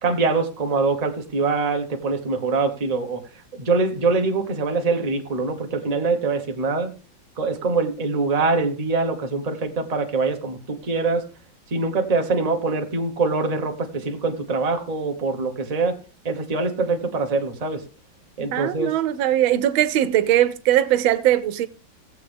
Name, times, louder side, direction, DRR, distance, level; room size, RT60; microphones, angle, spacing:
voice 1, 0.0-3.2 3.5-6.9 7.4-11.2 11.7-16.0 16.2-17.8 18.4-18.9, right 3 dB, 25° right, 1.0 m, -24 dB
voice 2, 18.5-21.7, right 12 dB, 90° right, 1.5 m, -20 dB
16.5 x 7.5 x 3.4 m
omnidirectional pair, 2.1 m